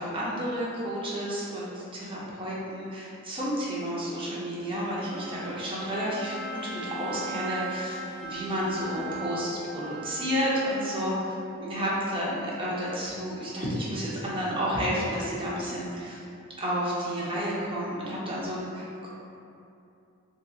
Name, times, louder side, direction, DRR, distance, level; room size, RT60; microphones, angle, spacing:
voice 1, 0.0-11.3 11.6-16.2 16.6-19.1, equal, 25° right, -6 dB, 0.5 m, -31 dB
Bowed string instrument, 4.8-11.2, right 2 dB, 35° left, 1.0 m, -39 dB
2.8 x 2.5 x 2.3 m, 2.6 s
head